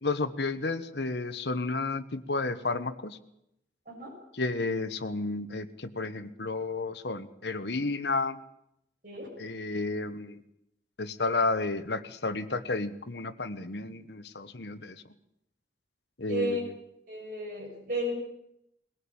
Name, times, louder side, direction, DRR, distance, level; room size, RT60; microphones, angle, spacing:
voice 1, 0.0-3.2 4.3-8.4 9.4-10.4 11.0-15.0 16.2-16.7, left 3 dB, 75° left, 10 dB, 1.3 m, -32 dB
voice 2, 16.3-16.6 17.1-18.1, equal, 50° right, -2 dB, 6.6 m, -33 dB
21.0 x 17.5 x 8.8 m, 0.80 s
head